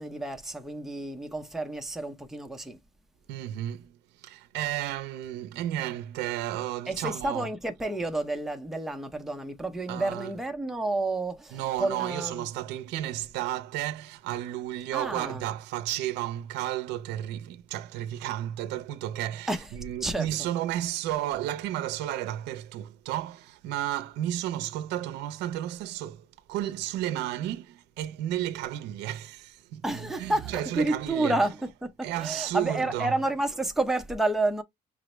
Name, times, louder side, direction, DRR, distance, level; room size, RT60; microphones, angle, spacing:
voice 1, 0.0-2.8 6.9-12.5 14.9-15.5 19.5-20.5 29.8-31.7 32.0-34.6, right 2 dB, ahead, 0.7 m, -30 dB
voice 2, 3.3-7.5 9.9-10.3 11.5-31.4 32.0-33.1, right 13 dB, 85° right, 0.5 m, -33 dB
5.1 x 2.0 x 3.1 m
cardioid pair, 110°, 17 cm